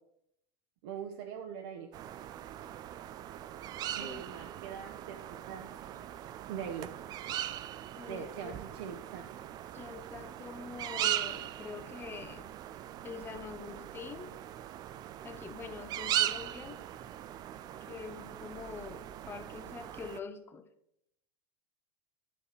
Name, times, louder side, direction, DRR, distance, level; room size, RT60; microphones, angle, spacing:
voice 1, 0.8-1.9 3.9-5.7 6.5-6.9 8.1-9.3, right 7 dB, 70° right, 3 dB, 0.9 m, -42 dB
sound 1, 1.9-20.2, right 12 dB, 30° right, 0.4 m, -39 dB
voice 2, 8.0-8.5 9.7-12.5 13.0-14.4 15.2-16.8 17.9-20.7, left 5 dB, 15° left, 8 dB, 0.7 m, -45 dB
11.0 x 4.8 x 4.8 m, 0.77 s
supercardioid pair, 140°, 14 cm